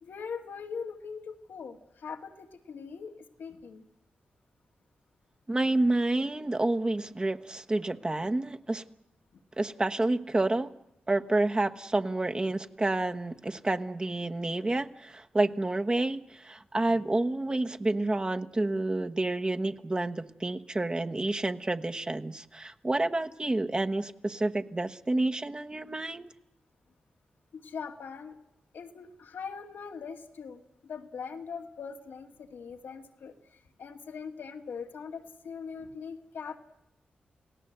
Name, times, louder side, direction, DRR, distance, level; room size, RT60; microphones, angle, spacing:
voice 1, 0.0-3.1 3.4-3.8 5.7-5.8 27.5-28.3 28.7-33.3 33.8-36.6, left 6 dB, 85° left, 3 dB, 2.2 m, -41 dB
voice 2, 5.5-8.8 9.6-10.7 11.1-26.3, right 2 dB, 25° right, 7 dB, 1.1 m, -29 dB
29.0 x 17.5 x 8.0 m, 0.86 s
cardioid pair, 75°, 3 cm